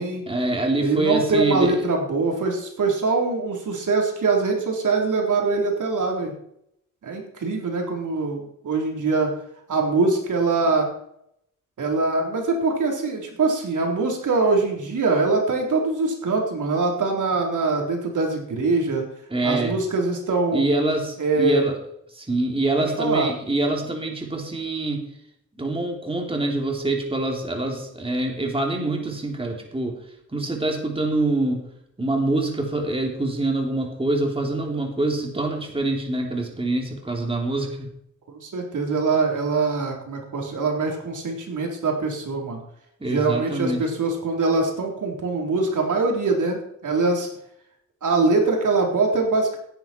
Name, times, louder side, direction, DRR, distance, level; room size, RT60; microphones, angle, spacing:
voice 1, 0.3-1.8 19.3-19.8 20.5-21.8 22.1-25.0 25.6-30.0 30.3-31.6 32.0-37.9 43.0-43.8, right 2 dB, 15° right, 1 dB, 3.3 m, -25 dB
voice 2, 0.8-6.3 7.0-9.4 9.7-10.9 11.8-19.1 19.4-20.7 21.2-21.7 22.8-23.3 38.3-42.6 43.0-47.3 48.0-49.6, right 3 dB, 70° right, 0 dB, 4.0 m, -23 dB
16.5 x 10.5 x 4.6 m, 0.73 s
cardioid pair, 80°, 31 cm